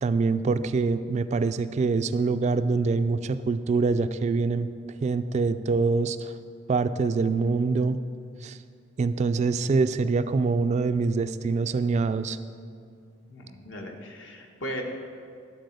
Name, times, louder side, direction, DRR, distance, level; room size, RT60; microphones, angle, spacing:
voice 1, 0.0-4.7 5.0-6.3 6.7-8.0 8.4-8.6 9.0-12.4, right 4 dB, 35° right, 11 dB, 0.3 m, -25 dB
voice 2, 13.3-14.8, equal, 70° left, 1 dB, 1.3 m, -37 dB
11.5 x 4.1 x 7.8 m, 2.3 s
head